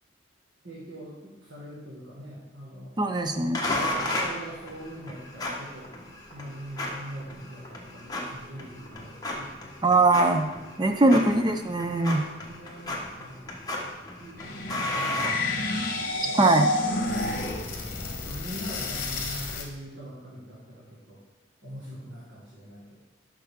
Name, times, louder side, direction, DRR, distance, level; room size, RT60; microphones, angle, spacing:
voice 1, 0.6-2.9 3.2-9.6 10.9-11.3 12.5-13.5 14.2-15.5 16.2-16.4 17.4-17.9 18.2-21.2 21.6-23.0, equal, 60° right, -7 dB, 1.7 m, -42 dB
voice 2, 3.0-3.6 9.8-10.5 10.8-12.2 16.3-16.7, right 2 dB, 20° right, 6 dB, 0.4 m, -21 dB
sound 1, 3.5-16.0, left 1 dB, 20° left, 1.1 m, -34 dB
sound 2, 14.4-19.6, left 2 dB, 45° left, 1.2 m, -30 dB
10.5 x 5.8 x 3.6 m, 1.1 s
head